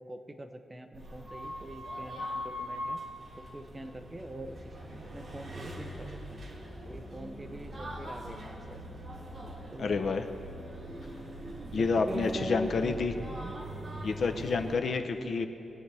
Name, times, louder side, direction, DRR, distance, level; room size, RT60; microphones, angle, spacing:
voice 1, 0.0-3.0 3.3-4.7 5.1-6.4 6.8-9.0 9.7-10.2 11.6-13.0 13.2-13.5 15.2-15.3, right 1 dB, 15° right, 7 dB, 0.6 m, -43 dB
sound 1, 0.9-14.8, equal, 30° right, 2.9 m, -41 dB
voice 2, 9.8-10.3 11.7-13.1 14.0-15.5, left 4 dB, 50° left, 7 dB, 0.7 m, -29 dB
22.5 x 9.2 x 3.4 m, 2.7 s
wide cardioid pair, 155°, 0 cm